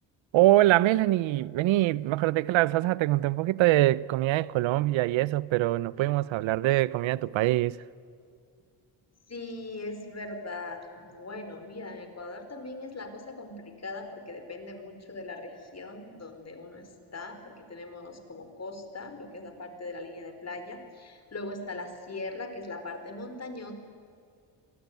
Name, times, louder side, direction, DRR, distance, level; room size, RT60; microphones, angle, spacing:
voice 1, 0.3-7.8, right 16 dB, 85° right, 0.7 m, -24 dB
voice 2, 9.3-23.7, left 2 dB, 35° left, 4.5 m, -40 dB
26.5 x 19.0 x 9.3 m
cardioid pair, 95°, 45 cm